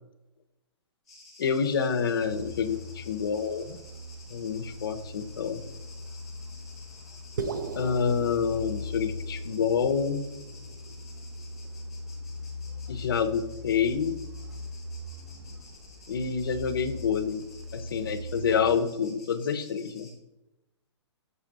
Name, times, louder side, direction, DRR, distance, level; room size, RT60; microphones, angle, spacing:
sound 1, 1.0-20.2, left 2 dB, ahead, 1.1 m, -53 dB
voice 1, 1.4-3.8 4.3-5.6 7.8-10.2 12.9-14.2 16.1-17.4 17.7-20.1, left 6 dB, 50° left, 10 dB, 0.6 m, -28 dB
Truck, 2.2-18.7, left 1 dB, 65° right, 1.4 m, -41 dB
sound 2, 7.4-11.8, right 4 dB, 40° right, 0.4 m, -39 dB
6.8 x 4.6 x 3.9 m, 0.97 s
hypercardioid pair, 180°, 15 cm